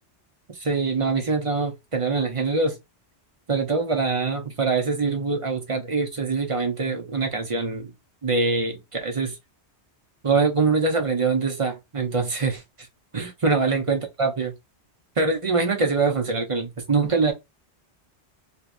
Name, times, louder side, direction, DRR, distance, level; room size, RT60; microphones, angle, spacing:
voice 1, 0.5-2.8 3.5-7.9 8.2-9.4 10.2-12.6 13.1-14.5 15.2-17.3, right 4 dB, 30° right, 0.9 m, -24 dB
3.1 x 3.1 x 2.5 m
omnidirectional pair, 1.2 m